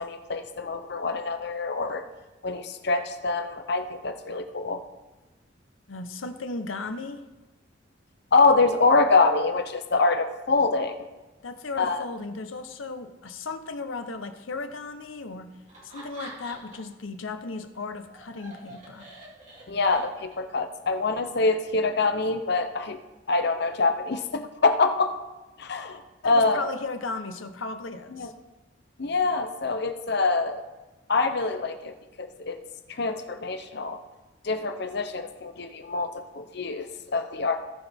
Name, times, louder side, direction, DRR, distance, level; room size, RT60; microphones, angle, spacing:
voice 1, 0.0-2.0 2.4-4.8 8.3-11.0 11.8-12.0 19.7-23.0 23.3-25.2 25.6-26.7 28.1-28.3 29.0-30.6 31.1-32.6 32.9-34.0 34.4-37.6, left 3 dB, 55° left, 8 dB, 0.7 m, -25 dB
voice 2, 5.9-7.2 11.4-15.5 15.8-19.1 26.2-28.3, left 3 dB, 90° left, 9 dB, 0.9 m, -36 dB
Laughter, 15.7-17.0 17.3-20.5, right 2 dB, 40° right, 2.8 m, -45 dB
18.5 x 6.1 x 3.5 m, 1.1 s
head